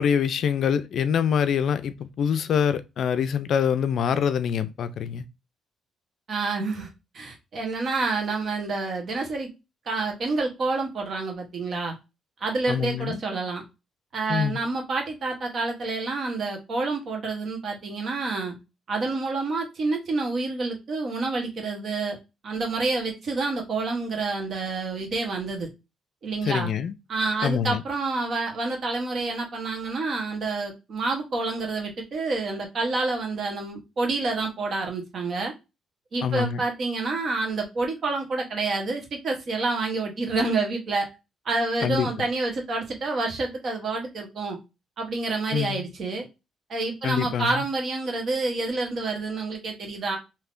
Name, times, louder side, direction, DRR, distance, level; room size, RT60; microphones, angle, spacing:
voice 1, 0.0-5.2 12.7-13.2 14.3-14.6 26.4-26.9 27.4-27.8 36.2-36.6 41.8-42.1 45.5-45.8 47.0-47.6, left 7 dB, 65° left, 0.3 m, -25 dB
voice 2, 6.3-6.9 7.1-9.5 9.9-11.9 12.4-13.6 14.1-18.6 18.9-22.2 22.4-25.7 26.2-26.7 27.1-35.5 36.1-41.1 41.4-44.6 45.0-46.2 46.7-50.2, right 3 dB, 55° right, 1.0 m, -28 dB
3.4 x 2.7 x 2.5 m
cardioid pair, 90°, 0 cm